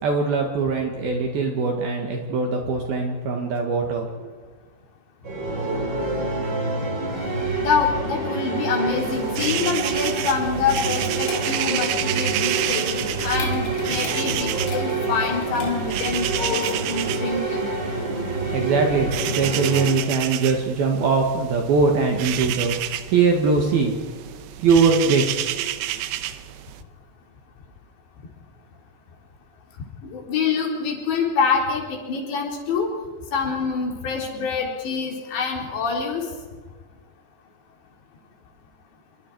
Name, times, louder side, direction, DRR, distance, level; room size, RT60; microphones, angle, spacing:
voice 1, 0.0-4.3 18.0-22.7 23.1-24.0 24.6-25.4, right 4 dB, 60° right, 2 dB, 3.3 m, -22 dB
sound 1, 5.2-19.9, right 2 dB, 25° right, 3.6 m, -27 dB
voice 2, 7.2-17.7 30.0-32.9 33.3-36.3, left 5 dB, 70° left, 0 dB, 5.9 m, -26 dB
sound 2, 9.0-26.8, right 13 dB, 80° right, 3.0 m, -30 dB
sound 3, 9.9-16.1, left 3 dB, 30° left, 3.3 m, -38 dB
28.0 x 24.0 x 4.8 m, 1.5 s
omnidirectional pair, 5.3 m